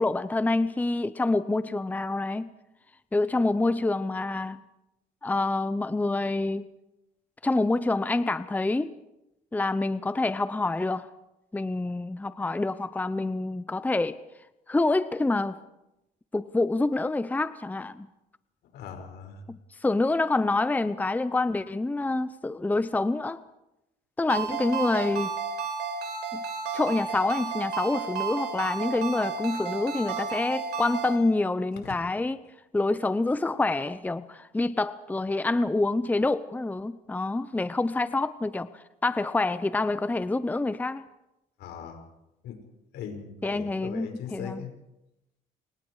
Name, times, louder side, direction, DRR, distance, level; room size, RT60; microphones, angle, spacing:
voice 1, 0.0-2.5 3.1-4.6 5.2-6.7 7.4-8.9 9.5-11.1 11.5-14.2 14.7-15.6 16.3-18.1 19.5-23.4 24.2-25.4 26.3-26.4 26.7-32.4 32.7-41.0 43.4-44.7, left 2 dB, 10° left, 13 dB, 0.8 m, -27 dB
voice 2, 18.7-19.4 41.6-42.0 42.4-42.6 42.9-44.7, left 7 dB, 80° left, 5 dB, 5.7 m, -39 dB
Ringtone, 24.3-31.2, right 5 dB, 90° right, 6.3 m, -32 dB
29.0 x 25.0 x 4.9 m, 0.91 s
cardioid pair, 110°, 17 cm